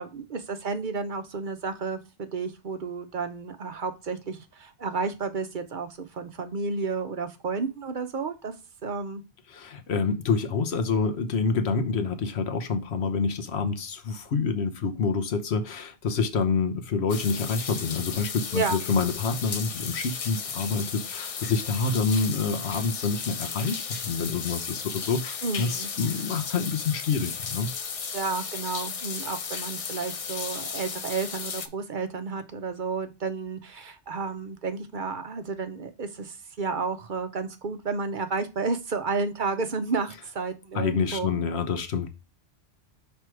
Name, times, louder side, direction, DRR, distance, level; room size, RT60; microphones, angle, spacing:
voice 1, 0.0-8.5 8.8-9.2 18.5-18.8 25.4-25.9 28.1-41.3, right 4 dB, 55° right, 0.8 m, -31 dB
voice 2, 9.5-27.7 40.7-42.1, left 5 dB, 75° left, 1.1 m, -27 dB
sound 1, 17.1-31.7, left 6 dB, 45° left, 0.5 m, -35 dB
6.1 x 3.4 x 4.5 m
omnidirectional pair, 1.1 m